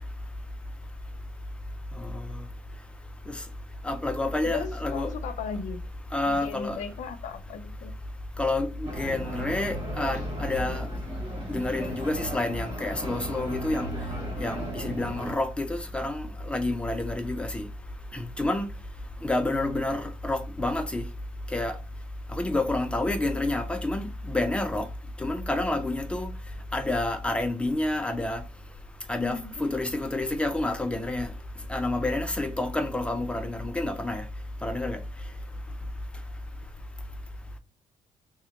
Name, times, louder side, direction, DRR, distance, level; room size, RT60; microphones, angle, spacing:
voice 1, 3.8-5.1 6.1-6.8 8.4-10.9 11.5-13.9 14.4-17.7 18.1-18.7 19.2-21.1 21.5-21.8 22.3-24.9 25.2-26.3 26.7-28.4 29.1-31.3 31.7-34.2 34.6-35.0, left 2 dB, 10° left, 0.5 m, -29 dB
voice 2, 4.4-5.8 6.2-7.9 29.2-29.6, left 6 dB, 70° left, 0.7 m, -36 dB
sound 1, 8.8-15.3, right 1 dB, 50° right, 1.2 m, -36 dB
3.6 x 2.1 x 4.3 m
cardioid pair, 180°, 13 cm